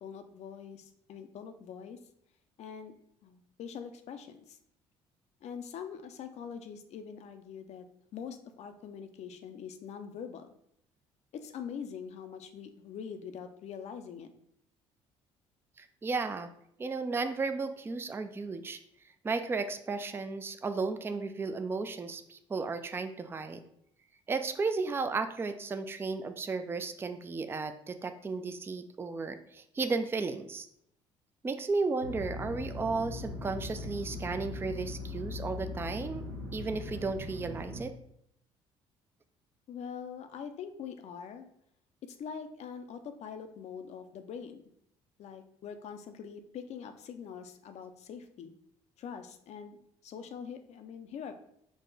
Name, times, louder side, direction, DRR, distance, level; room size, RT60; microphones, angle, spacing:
voice 1, 0.0-2.0 2.6-2.9 3.2-4.6 5.4-7.9 8.1-10.5 11.3-14.3 39.7-41.5 42.0-44.6 45.2-48.5 49.0-49.8 50.0-51.3, left 7 dB, 60° left, 8 dB, 0.5 m, -43 dB
voice 2, 15.8-16.5 16.8-18.8 19.2-23.6 24.3-30.7 31.4-36.3 36.5-37.9, right 4 dB, 15° right, 9 dB, 0.3 m, -34 dB
sound 1, 32.0-37.8, left 2 dB, 85° right, 0.7 m, -40 dB
4.7 x 2.1 x 3.9 m, 0.73 s
supercardioid pair, 70°, 13 cm